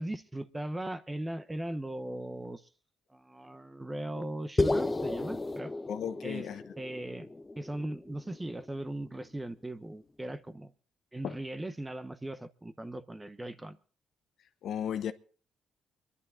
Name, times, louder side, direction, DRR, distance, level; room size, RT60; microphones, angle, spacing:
voice 1, 0.0-2.6 3.1-5.7 6.2-6.5 6.8-7.3 7.6-10.7 11.1-13.8, right 1 dB, 15° right, 0.9 m, -38 dB
sound 1, 4.6-9.0, left 2 dB, 20° left, 0.8 m, -33 dB
voice 2, 5.9-6.6 11.2-11.3 14.6-15.1, left 9 dB, 70° left, 1.0 m, -34 dB
25.0 x 11.0 x 3.7 m
cardioid pair, 90°, 0 cm